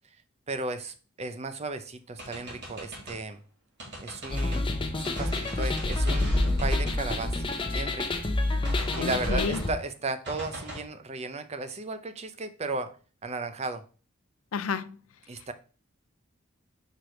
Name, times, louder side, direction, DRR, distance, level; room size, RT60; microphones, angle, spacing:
voice 1, 0.5-3.4 4.0-4.7 5.0-6.3 6.6-8.1 8.9-13.0 13.2-13.8 15.3-15.5, right 3 dB, 30° right, 0.6 m, -35 dB
sound 1, 2.2-3.2 3.8-4.7 5.0-7.9 8.6-9.7 10.3-10.8, equal, 55° right, 2.6 m, -37 dB
sound 2, 4.3-9.7, left 2 dB, 25° left, 0.8 m, -28 dB
voice 2, 8.9-9.6 14.5-15.0, left 5 dB, 80° left, 0.5 m, -31 dB
4.8 x 4.7 x 5.0 m
head